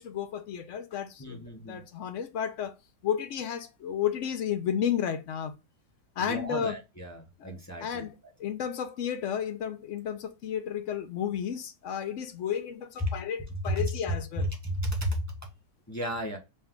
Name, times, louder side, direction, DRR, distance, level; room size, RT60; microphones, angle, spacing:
voice 1, 0.0-2.7 3.0-5.5 6.2-6.8 7.4-7.5 7.8-14.5, left 8 dB, 65° left, 0.7 m, -32 dB
voice 2, 1.2-1.8 6.3-8.0 13.6-13.8 14.6-15.2 15.9-16.4, equal, 20° left, 0.4 m, -33 dB
5.2 x 2.3 x 3.6 m
omnidirectional pair, 1.9 m